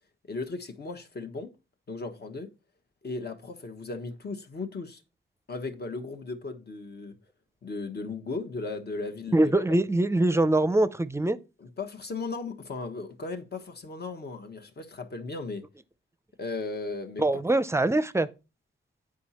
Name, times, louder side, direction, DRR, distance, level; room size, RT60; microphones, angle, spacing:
voice 1, 0.3-1.5 1.9-2.5 3.0-5.0 5.5-7.2 7.6-9.6 11.6-15.6 16.4-17.4, left 3 dB, 50° left, 1.1 m, -36 dB
voice 2, 9.3-11.4 17.2-18.3, right 2 dB, 15° right, 0.5 m, -23 dB
9.7 x 4.9 x 4.2 m
wide cardioid pair, 150°, 21 cm